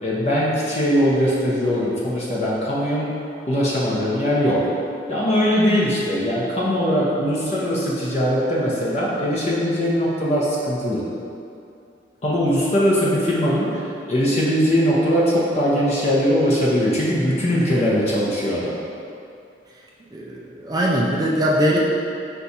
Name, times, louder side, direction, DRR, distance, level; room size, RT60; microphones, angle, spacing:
voice 1, 0.0-3.1 3.5-4.7 5.1-11.0 12.2-18.7, equal, 40° left, -6 dB, 0.6 m, -21 dB
voice 2, 20.1-21.8, equal, 20° right, -3 dB, 0.3 m, -21 dB
4.6 x 2.3 x 4.0 m, 2.6 s
head